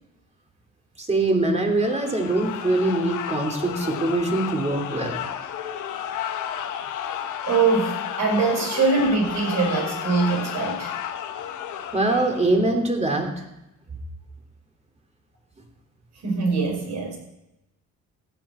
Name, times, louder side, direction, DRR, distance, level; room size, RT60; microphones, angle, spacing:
voice 1, 1.0-5.2 11.9-13.3, right 2 dB, 20° right, 3 dB, 3.0 m, -23 dB
sound 1, 1.7-12.7, left 9 dB, 85° left, 1.2 m, -32 dB
voice 2, 7.5-10.9 16.2-17.2, right 4 dB, 65° right, 1 dB, 5.4 m, -22 dB
15.0 x 9.7 x 4.4 m, 0.90 s
cardioid pair, 90°, 30 cm